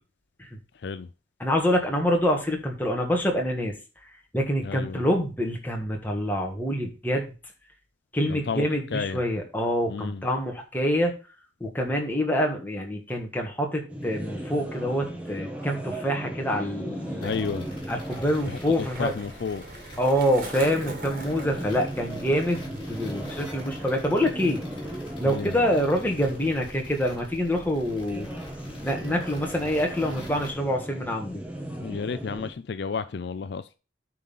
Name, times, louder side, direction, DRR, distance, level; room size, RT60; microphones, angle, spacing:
voice 1, 0.7-1.1 4.6-5.0 8.3-9.2 9.9-10.2 17.2-17.7 18.4-19.6 25.2-25.6 31.8-33.8, left 5 dB, 60° left, 0.4 m, -32 dB
voice 2, 1.4-3.7 4.3-7.3 8.1-11.1 11.6-17.3 17.9-19.1 20.0-24.6 25.2-28.3 28.8-31.4, equal, 10° left, 1.5 m, -26 dB
sound 1, 13.9-32.5, right 1 dB, 5° right, 1.4 m, -37 dB
Skateboard, 16.4-24.0 24.2-24.7, right 2 dB, 45° right, 2.1 m, -44 dB
sound 2, 17.2-30.5, left 1 dB, 25° left, 3.6 m, -46 dB
9.3 x 3.9 x 5.6 m
head